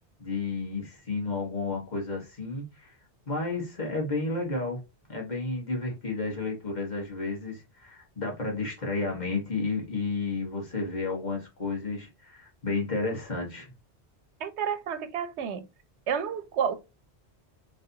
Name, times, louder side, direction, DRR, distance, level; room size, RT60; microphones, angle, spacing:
voice 1, 0.2-2.9 3.3-4.8 5.1-13.7, left 3 dB, 45° left, 1.4 m, -32 dB
voice 2, 14.4-15.7 16.1-16.8, right 7 dB, 90° right, 0.9 m, -30 dB
4.1 x 3.2 x 2.7 m
omnidirectional pair, 1.1 m